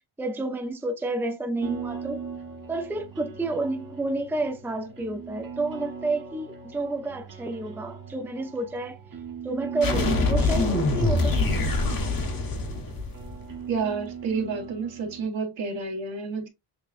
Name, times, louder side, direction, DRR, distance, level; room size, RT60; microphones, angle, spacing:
voice 1, 0.2-2.3 2.7-9.0 9.4-11.4, right 2 dB, 5° right, 0.6 m, -30 dB
sound 1, 1.6-15.3, right 6 dB, 45° right, 1.3 m, -39 dB
sound 2, 9.8-13.5, left 2 dB, 45° left, 1.3 m, -24 dB
voice 2, 13.7-16.5, right 4 dB, 70° right, 1.7 m, -30 dB
6.8 x 2.3 x 2.5 m
cardioid pair, 105°, 47 cm